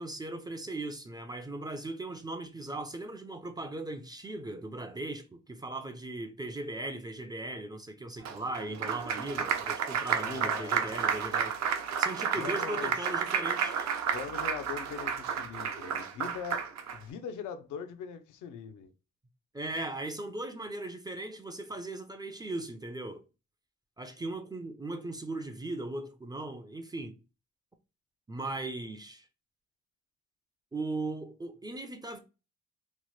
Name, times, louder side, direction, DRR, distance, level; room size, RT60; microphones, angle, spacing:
voice 1, 0.0-11.6 12.0-13.9 19.5-23.2 24.0-27.2 28.3-29.3 30.7-32.2, right 2 dB, 15° right, 0.3 m, -38 dB
Applause, 8.3-17.0, right 7 dB, 65° right, 0.6 m, -31 dB
voice 2, 10.1-10.9 12.3-12.9 14.1-16.7 16.9-18.9, left 7 dB, 80° left, 0.5 m, -41 dB
3.0 x 2.0 x 3.0 m
cardioid pair, 90°, 30 cm